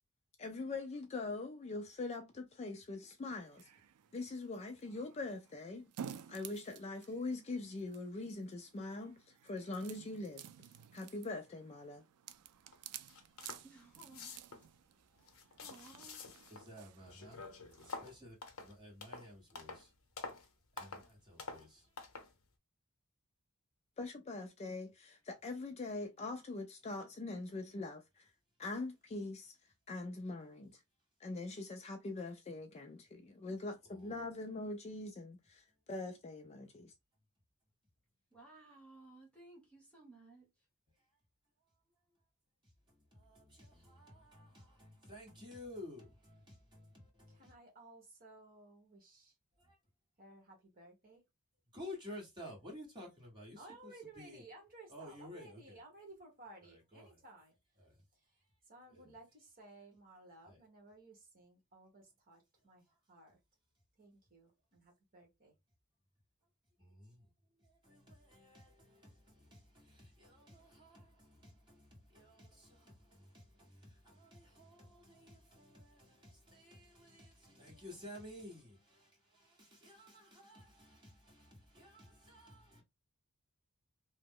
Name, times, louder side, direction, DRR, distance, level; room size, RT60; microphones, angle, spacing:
voice 1, 0.4-3.6 4.1-5.9 6.3-10.5 10.9-12.0 24.0-28.3 28.6-29.5 29.9-30.7 31.2-36.9, left 2 dB, 30° left, 0.3 m, -43 dB
sound 1, 3.3-18.0, right 9 dB, 85° right, 0.3 m, -54 dB
sound 2, 12.7-12.8 13.1-13.7 14.0-14.7 15.2-16.7 17.0-19.9 20.2-20.5 20.8-21.1 21.4-21.7 22.0-22.3, left 4 dB, 65° left, 0.8 m, -48 dB
voice 2, 13.6-14.3 15.6-16.2 18.2-18.3 38.3-40.5, right 2 dB, 5° left, 1.0 m, -58 dB
voice 3, 16.5-17.4 17.8-19.9 20.7-21.9 33.9-34.3 42.9-47.5 49.6-49.8 51.7-54.4 54.9-55.8 56.6-57.2 57.8-57.9 58.9-59.1 60.4-60.6 66.8-67.3 67.6-82.8, left 1 dB, 20° right, 1.6 m, -54 dB
voice 4, 47.3-49.3 50.2-51.2 53.6-57.5 58.7-63.4 64.0-65.5, right 2 dB, 40° right, 1.2 m, -57 dB
2.9 x 2.1 x 3.6 m
head